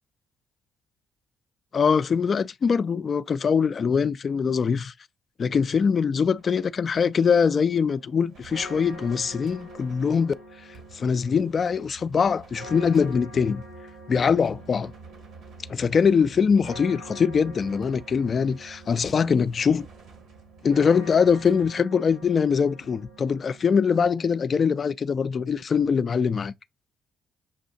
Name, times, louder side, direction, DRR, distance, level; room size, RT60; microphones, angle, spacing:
voice 1, 1.7-4.9 5.4-10.3 10.9-13.6 14.1-14.9 15.7-19.9 20.6-26.5, left 6 dB, 50° left, 0.4 m, -23 dB
sound 1, 6.4-21.7, right 4 dB, 70° right, 1.8 m, -50 dB
sound 2, 7.4-24.0, right 1 dB, 90° right, 2.9 m, -45 dB
7.0 x 2.7 x 2.6 m
supercardioid pair, 60°, 0 cm